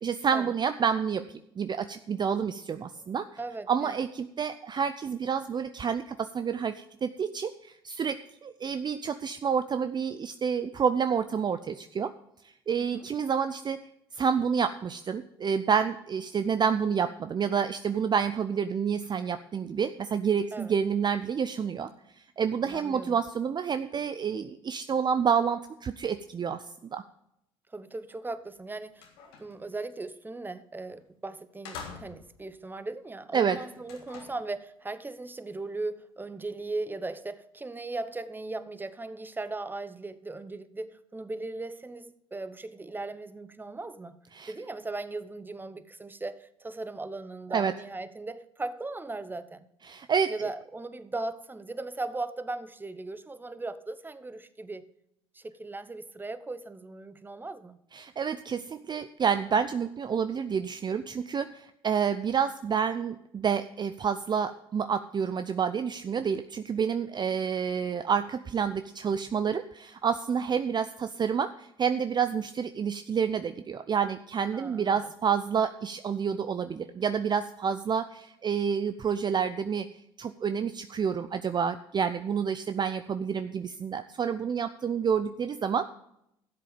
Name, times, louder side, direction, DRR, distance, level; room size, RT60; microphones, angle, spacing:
voice 1, 0.0-3.3 3.7-12.1 12.7-13.8 14.1-21.9 22.4-26.6 26.9-27.0 33.3-33.6 44.3-44.5 47.5-47.7 49.9-50.5 57.9-79.9 80.2-86.0, right 7 dB, 35° right, 10 dB, 0.5 m, -29 dB
voice 2, 3.4-4.0 12.8-13.1 20.5-20.7 22.6-23.2 27.7-29.0 29.4-44.2 44.5-49.7 50.3-54.8 55.3-57.8 74.5-75.0, right 2 dB, 15° right, 13 dB, 0.9 m, -38 dB
sound 1, 28.4-28.5 28.9-29.6 30.9-31.1 31.6-32.4 33.8-34.5, left 6 dB, 85° left, 1.7 m, -45 dB
12.5 x 7.6 x 5.1 m, 0.77 s
hypercardioid pair, 65°, 12 cm